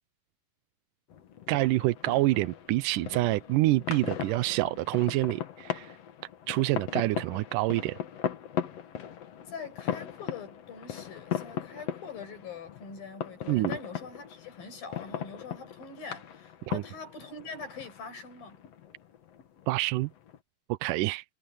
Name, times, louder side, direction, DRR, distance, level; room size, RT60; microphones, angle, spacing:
sound 1, 1.1-20.4, left 9 dB, 55° left, 2.2 m, -39 dB
voice 1, 1.5-5.9 6.5-8.0 13.5-13.8 16.7-16.8 19.7-20.1 20.7-21.2, right 18 dB, 80° right, 2.0 m, -27 dB
voice 2, 9.5-18.6, left 5 dB, 80° left, 8.7 m, -43 dB
omnidirectional pair, 4.0 m